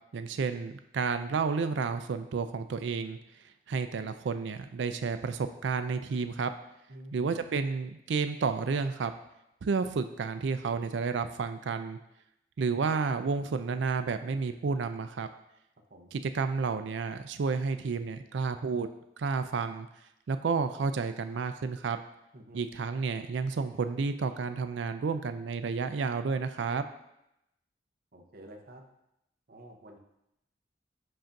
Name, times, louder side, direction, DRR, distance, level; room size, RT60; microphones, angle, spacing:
voice 1, 0.1-3.2 3.7-6.5 7.1-9.1 9.6-12.0 12.6-15.3 16.1-18.9 19.2-19.9 20.3-22.0 22.5-26.8, right 5 dB, 75° right, 9 dB, 0.4 m, -31 dB
voice 2, 6.9-7.4 15.9-16.1 22.3-22.6 28.1-28.8 29.5-30.0, right 1 dB, 55° right, 2 dB, 0.8 m, -49 dB
7.7 x 2.6 x 5.8 m, 0.84 s
head